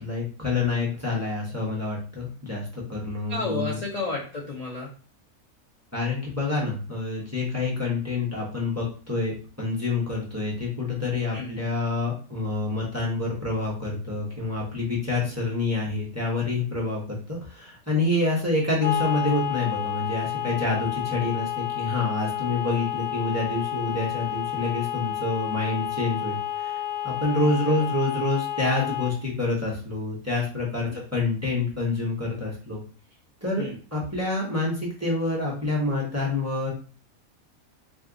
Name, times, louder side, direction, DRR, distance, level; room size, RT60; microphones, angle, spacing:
voice 1, 0.0-3.8 5.9-17.0 17.3-26.8 27.0-32.8 33.4-33.7 33.9-36.7, left 2 dB, 15° right, -4 dB, 0.6 m, -27 dB
voice 2, 3.3-4.9 11.3-11.5 27.3-27.8 30.9-31.0 33.6-33.7, left 3 dB, 70° left, -3 dB, 0.4 m, -32 dB
sound 1, 18.8-29.2, left 11 dB, 90° left, 1.1 m, -30 dB
2.6 x 2.4 x 3.7 m, 0.39 s
omnidirectional pair, 1.5 m